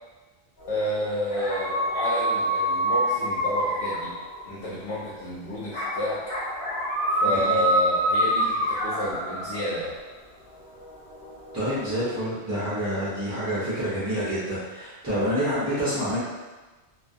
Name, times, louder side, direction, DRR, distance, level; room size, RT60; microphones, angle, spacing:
sound 1, 0.6-4.7 5.7-9.9 10.5-12.0, right 1 dB, 85° left, 1.1 m, -27 dB
voice 1, 0.7-4.1 4.4-6.2 7.1-10.0, left 1 dB, 60° left, -8 dB, 0.7 m, -30 dB
voice 2, 7.2-7.6 11.5-16.2, equal, 25° right, -11 dB, 0.4 m, -28 dB
2.3 x 2.2 x 2.5 m, 1.2 s
omnidirectional pair, 1.1 m